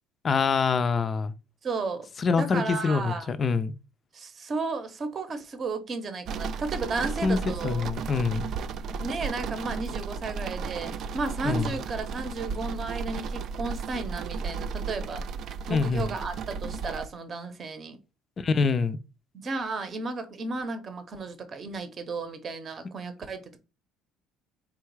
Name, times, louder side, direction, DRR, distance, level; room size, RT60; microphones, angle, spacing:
voice 1, 0.2-1.3 2.2-3.7 7.2-7.4 7.6-8.5 11.4-11.8 15.7-16.1 18.4-19.0, left 5 dB, 35° left, 0.4 m, -25 dB
voice 2, 1.6-3.3 4.1-7.9 9.0-15.2 15.7-18.0 19.3-23.6, right 3 dB, 35° right, 0.8 m, -34 dB
sound 1, 6.3-17.1, right 5 dB, 55° right, 0.3 m, -34 dB
3.9 x 2.3 x 4.6 m
cardioid pair, 115°, 0 cm